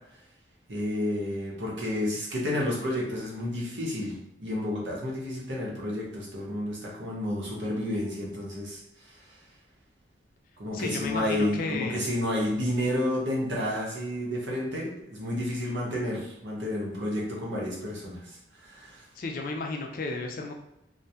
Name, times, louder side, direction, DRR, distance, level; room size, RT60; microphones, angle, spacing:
voice 1, 0.7-4.1 4.4-8.8 10.6-19.0, left 1 dB, 85° right, -3 dB, 0.8 m, -30 dB
voice 2, 10.7-12.1 19.2-20.5, left 3 dB, 50° left, 3 dB, 0.4 m, -33 dB
2.2 x 2.1 x 2.7 m, 0.84 s
head